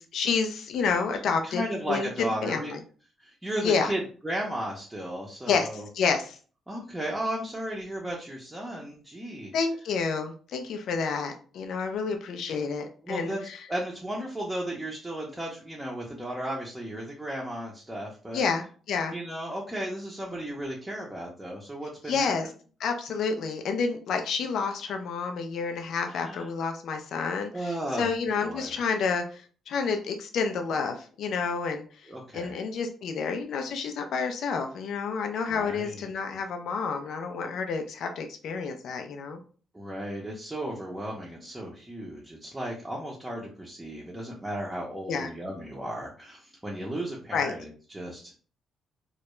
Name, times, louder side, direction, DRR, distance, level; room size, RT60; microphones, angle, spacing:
voice 1, 0.0-1.6 1.9-2.1 2.4-2.8 3.6-3.9 5.5-6.4 9.5-13.6 18.3-19.1 22.1-22.5 22.8-39.4 45.1-45.3 47.3-47.5, left 5 dB, 70° left, 5 dB, 0.3 m, -29 dB
voice 2, 1.4-2.7 3.2-5.9 6.7-9.5 13.0-13.4 13.7-18.4 19.1-22.4 26.1-26.5 27.5-28.1 28.4-28.9 32.1-32.6 35.5-36.1 39.7-48.4, right 1 dB, 10° right, -4 dB, 0.5 m, -35 dB
2.2 x 2.0 x 2.9 m, 0.40 s
cardioid pair, 90°, 0 cm